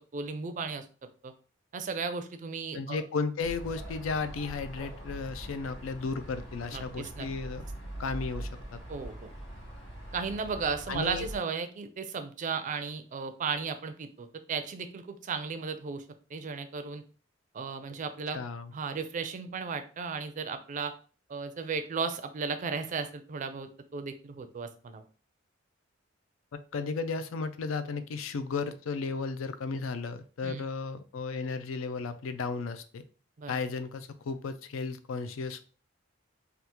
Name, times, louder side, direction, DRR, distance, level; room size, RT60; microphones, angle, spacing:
voice 1, 0.1-0.8 1.2-1.3 1.7-3.0 6.7-7.3 8.9-9.3 10.1-16.0 16.3-17.0 17.5-18.4 18.7-20.9 21.3-25.0 30.4-30.6 33.4-33.5, right 5 dB, 40° right, 9 dB, 0.4 m, -35 dB
voice 2, 2.7-7.6 8.0-8.8 10.9-11.3 18.3-18.7 26.7-33.0 33.5-35.6, left 4 dB, 90° left, 11 dB, 0.4 m, -34 dB
sound 1, 3.4-11.4, right 1 dB, 65° left, 1.5 m, -43 dB
3.4 x 2.3 x 2.9 m, 0.38 s
head